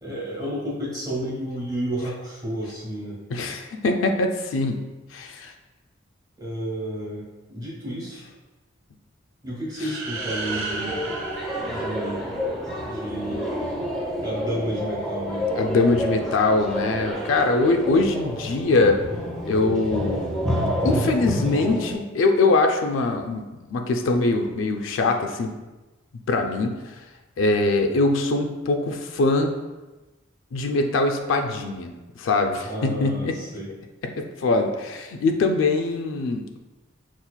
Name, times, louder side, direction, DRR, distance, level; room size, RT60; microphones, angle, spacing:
voice 1, 0.0-3.2 6.4-7.2 7.5-8.3 9.4-11.0 11.7-12.3 12.8-13.7 14.2-15.5 32.6-33.7, right 1 dB, 20° right, -6 dB, 1.0 m, -31 dB
voice 2, 3.3-5.5 15.6-19.0 19.5-20.3 20.8-25.5 26.3-27.0 27.4-29.5 30.5-33.4 34.2-36.6, left 3 dB, 70° left, 4 dB, 0.3 m, -23 dB
sound 1, 9.7-12.6, right 3 dB, 70° right, 0.5 m, -34 dB
sound 2, 9.9-21.9, equal, ahead, 0.6 m, -29 dB
5.5 x 2.4 x 2.2 m, 1.1 s
head